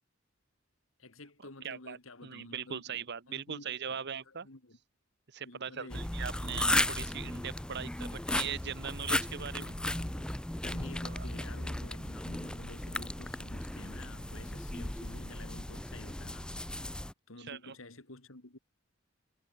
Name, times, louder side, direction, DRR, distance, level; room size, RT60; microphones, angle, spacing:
voice 1, 1.0-4.0 4.3-4.8 5.4-6.1 9.5-10.3 10.6-16.9 17.3-18.6, left 2 dB, 80° left, 2.9 m, -51 dB
voice 2, 1.6-4.5 5.3-9.8 11.1-11.3 17.4-17.7, right 7 dB, 60° right, 1.1 m, -40 dB
sound 1, 5.9-17.1, left 1 dB, 5° left, 0.4 m, -35 dB
head